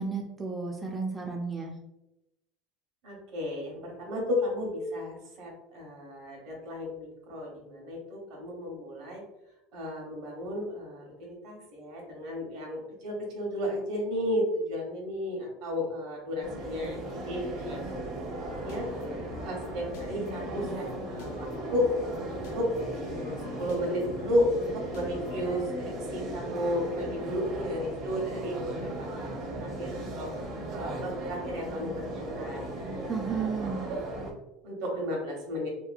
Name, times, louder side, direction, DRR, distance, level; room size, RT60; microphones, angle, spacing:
voice 1, 0.0-1.8 33.1-33.8, right 5 dB, 10° right, 0 dB, 0.3 m, -32 dB
voice 2, 3.0-9.2 9.7-17.8 18.2-18.9 19.4-21.9 22.3-22.7 23.1-30.3 30.7-33.1 33.6-34.0 34.6-35.7, left 1 dB, 65° right, -1 dB, 1.0 m, -33 dB
sound 1, 16.4-34.3, right 1 dB, 45° right, 0.7 m, -37 dB
sound 2, 18.6-25.6, left 4 dB, 80° left, 0.3 m, -45 dB
2.8 x 2.2 x 2.5 m, 0.91 s
supercardioid pair, 135°, 0 cm